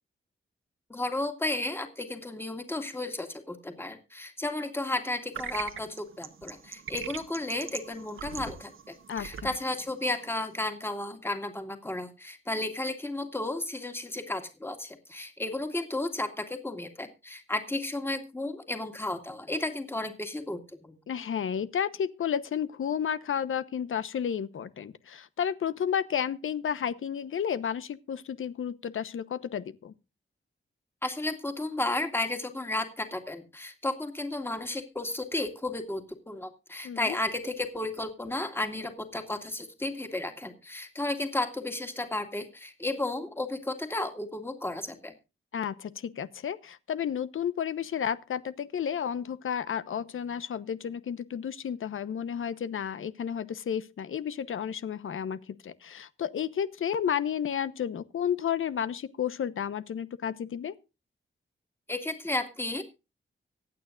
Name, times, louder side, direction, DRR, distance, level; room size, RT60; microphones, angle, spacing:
voice 1, 0.9-8.7 9.1-20.9 31.0-45.1 61.9-62.8, left 2 dB, 10° left, 2.2 m, -33 dB
sound 1, 5.3-10.7, right 7 dB, 70° right, 1.4 m, -41 dB
voice 2, 9.1-9.5 21.1-29.9 36.8-37.2 45.5-60.8, left 8 dB, 75° left, 1.0 m, -32 dB
25.0 x 9.2 x 2.5 m
wide cardioid pair, 180°, 21 cm